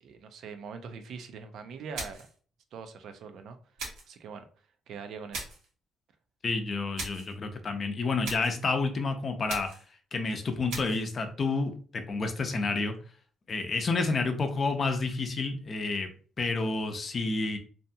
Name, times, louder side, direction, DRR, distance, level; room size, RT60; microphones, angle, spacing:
voice 1, 0.0-2.3 2.7-3.6 4.1-4.5 4.9-5.5, right 5 dB, 75° right, 7 dB, 0.4 m, -42 dB
sound 1, 1.9-2.4 3.8-4.2 5.3-5.7 7.0-7.3 8.2-8.6 9.5-9.9 10.7-11.1, right 3 dB, 90° right, 0.9 m, -39 dB
voice 2, 6.4-9.7 10.1-12.9 13.5-16.1 16.4-17.6, left 3 dB, 45° left, 6 dB, 0.5 m, -29 dB
2.7 x 2.2 x 2.6 m, 0.42 s
cardioid pair, 90°, 0 cm